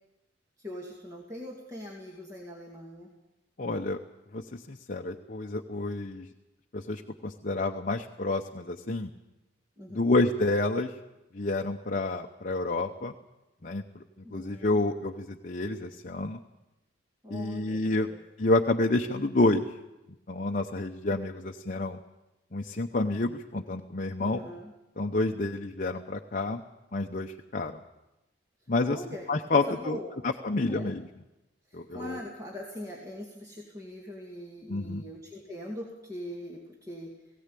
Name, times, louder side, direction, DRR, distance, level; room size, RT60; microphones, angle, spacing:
voice 1, 0.6-3.1 9.8-10.1 14.2-14.8 17.2-18.2 24.2-24.7 28.9-29.3 29.5-30.2 30.5-30.9 31.7-37.1, left 1 dB, 15° right, -2 dB, 2.3 m, -42 dB
voice 2, 3.6-4.0 4.3-6.3 6.7-9.1 9.9-11.0 11.3-13.1 13.6-14.0 14.3-16.4 17.3-18.1 18.4-19.7 20.3-22.0 22.5-24.4 25.0-26.6 26.9-27.8 28.7-29.0 29.3-31.0 31.7-32.2 34.7-35.0, left 2 dB, 45° left, 3 dB, 0.8 m, -29 dB
18.5 x 17.0 x 8.4 m, 0.98 s
head